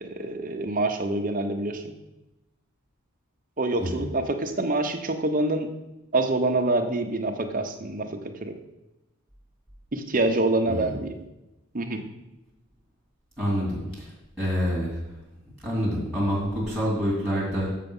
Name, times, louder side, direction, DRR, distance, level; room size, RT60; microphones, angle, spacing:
voice 1, 0.0-1.9 3.6-5.7 6.1-8.1 8.4-8.5 9.9-11.1 11.7-12.1, right 2 dB, 40° right, 4 dB, 0.8 m, -26 dB
voice 2, 13.4-14.1 14.4-15.0 15.6-17.7, equal, ahead, -6 dB, 2.8 m, -27 dB
6.9 x 6.8 x 5.4 m, 0.97 s
head